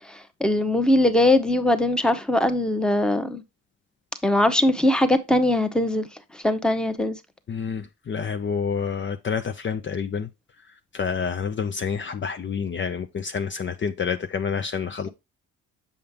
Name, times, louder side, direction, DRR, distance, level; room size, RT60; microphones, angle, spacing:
voice 1, 0.1-3.4 4.2-6.1 6.3-7.2 15.0-15.1, left 1 dB, 5° left, 1.0 m, -21 dB
voice 2, 7.5-10.3 10.9-15.1, left 6 dB, 40° left, 0.7 m, -28 dB
7.1 x 5.2 x 3.6 m
cardioid pair, 90°, 30 cm